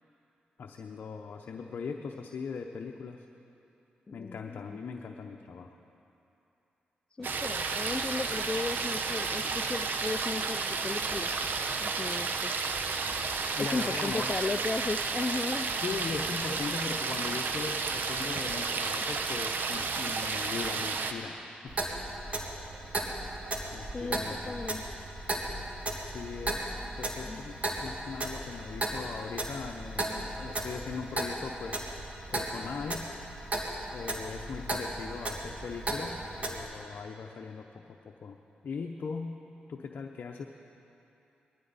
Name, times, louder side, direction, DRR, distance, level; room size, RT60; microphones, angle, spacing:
voice 1, 0.6-3.3 4.1-5.7 13.6-14.3 15.8-21.8 23.7-24.6 26.0-31.9 32.3-33.1 33.9-38.4 38.6-39.3 39.7-40.4, left 5 dB, 65° left, 2 dB, 0.7 m, -39 dB
voice 2, 4.1-4.8 7.1-11.5 11.8-12.6 13.6-15.7 23.9-24.8 27.2-27.4, left 3 dB, 30° left, 10 dB, 0.4 m, -35 dB
sound 1, 7.2-19.2, left 1 dB, 5° left, 3.0 m, -51 dB
sound 2, 7.2-21.1, right 4 dB, 70° right, 0.9 m, -32 dB
Clock, 21.7-36.6, right 1 dB, 40° right, 2.2 m, -36 dB
20.0 x 13.5 x 4.1 m, 2.9 s
cardioid pair, 55°, 3 cm